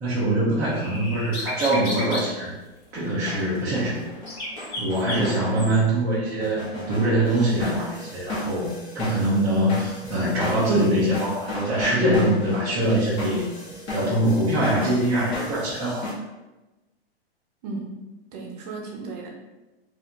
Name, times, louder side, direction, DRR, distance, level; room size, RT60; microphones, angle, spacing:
voice 1, 0.0-2.5 2.9-4.0 4.8-13.5 13.9-16.0, right 1 dB, 10° right, -9 dB, 0.3 m, -23 dB
sound 1, 0.7-2.3 3.7-3.8 4.3-5.8, left 2 dB, 50° left, 1.3 m, -33 dB
sound 2, 2.9-16.1, equal, 30° left, 1.0 m, -35 dB
voice 2, 5.1-5.4 17.6-17.9 18.3-19.3, right 3 dB, 40° right, 1 dB, 0.7 m, -33 dB
4.3 x 2.5 x 2.5 m, 1.1 s
hypercardioid pair, 155°, 31 cm